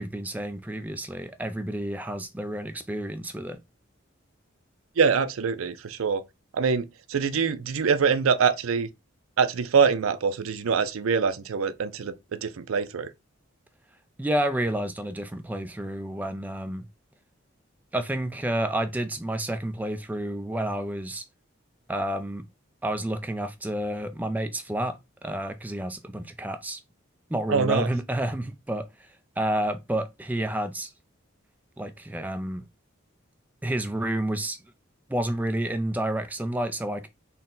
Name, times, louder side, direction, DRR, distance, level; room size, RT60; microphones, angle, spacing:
voice 1, 0.0-3.6 14.2-16.9 17.9-21.2 21.9-22.5 22.8-26.8 27.3-29.1 29.4-30.9 31.8-32.6 33.6-34.6 35.1-37.1, right 1 dB, 10° right, 0.3 m, -30 dB
voice 2, 5.0-6.2 6.5-8.9 9.4-13.1 27.5-27.9, right 6 dB, 85° right, 0.5 m, -24 dB
4.1 x 2.2 x 3.7 m
head